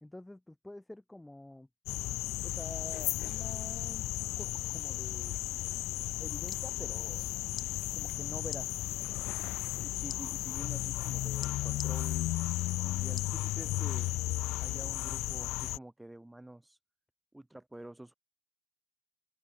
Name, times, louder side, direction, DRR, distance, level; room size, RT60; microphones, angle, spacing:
voice 1, 0.0-1.7 2.4-4.0 4.4-5.4 6.2-7.3 7.9-8.7, left 1 dB, 10° left, 2.6 m, -47 dB
sound 1, 1.9-15.8, left 19 dB, 75° left, 0.3 m, -34 dB
sound 2, 6.5-6.7 7.5-7.7 8.4-8.6 10.1-10.2 11.4-11.9 13.2-13.4 14.0-14.1, left 9 dB, 50° left, 5.4 m, -43 dB
voice 2, 9.7-12.4 12.8-14.1 14.6-16.8 17.3-18.1, right 1 dB, 10° right, 4.8 m, -48 dB
open air
supercardioid pair, 80°, 0 cm